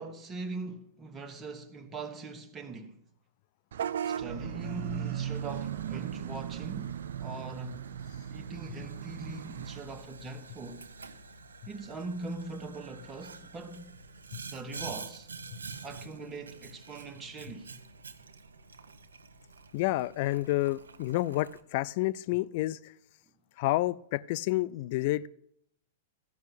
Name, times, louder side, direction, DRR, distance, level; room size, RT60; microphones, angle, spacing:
voice 1, 0.0-3.0 4.0-7.9 8.3-10.9 11.7-13.9 14.5-15.3 15.8-17.7, right 3 dB, 20° right, 1.4 m, -41 dB
Vehicle horn car horn honking / Bus, 3.7-9.8, right 9 dB, 70° right, 0.4 m, -37 dB
Boiling, 5.3-21.6, right 4 dB, 85° right, 1.0 m, -48 dB
voice 2, 19.7-22.8 23.6-25.3, left 17 dB, 55° left, 0.4 m, -29 dB
14.5 x 5.7 x 8.3 m
hypercardioid pair, 115°, 0 cm